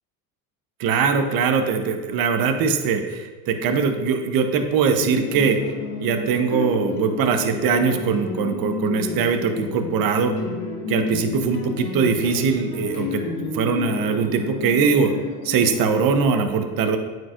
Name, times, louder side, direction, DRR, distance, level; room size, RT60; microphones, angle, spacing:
voice 1, 0.8-5.6 6.0-10.3 10.9-15.1 15.4-17.0, right 5 dB, 50° right, 7 dB, 0.9 m, -21 dB
sound 1, 4.9-15.7, left 3 dB, 70° left, 1.7 m, -30 dB
9.0 x 4.7 x 2.5 m, 1.3 s
hypercardioid pair, 80°, 46 cm